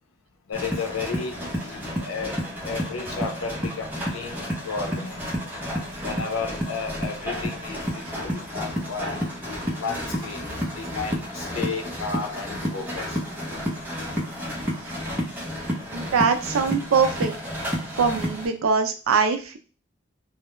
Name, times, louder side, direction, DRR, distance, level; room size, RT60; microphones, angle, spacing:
voice 1, 0.5-5.3 6.0-9.2 9.7-10.4 10.7-13.2, left 5 dB, 85° left, 3 dB, 0.6 m, -33 dB
sound 1, 0.5-18.5, equal, 10° right, 0.7 m, -31 dB
voice 2, 15.9-17.3 18.0-19.6, right 5 dB, 80° right, 6 dB, 0.4 m, -22 dB
2.2 x 2.0 x 3.0 m, 0.35 s
head